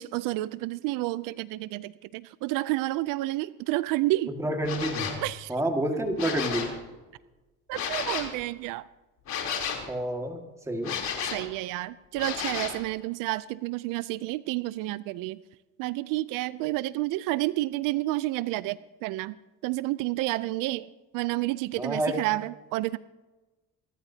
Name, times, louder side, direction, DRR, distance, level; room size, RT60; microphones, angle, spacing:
voice 1, 0.0-4.3 5.2-5.5 7.7-8.8 11.3-15.4 15.8-19.4 19.6-23.0, right 18 dB, 85° right, 17 dB, 0.5 m, -30 dB
voice 2, 4.4-5.1 5.5-6.7 9.9-11.0 21.8-22.2, right 1 dB, 10° right, 3 dB, 1.9 m, -29 dB
sound 1, 4.6-5.2 6.0-6.8 7.7-8.3 9.3-9.9 10.8-11.5 12.2-12.8, left 7 dB, 60° left, 3.4 m, -32 dB
26.0 x 13.0 x 2.8 m, 1.2 s
cardioid pair, 135°, 32 cm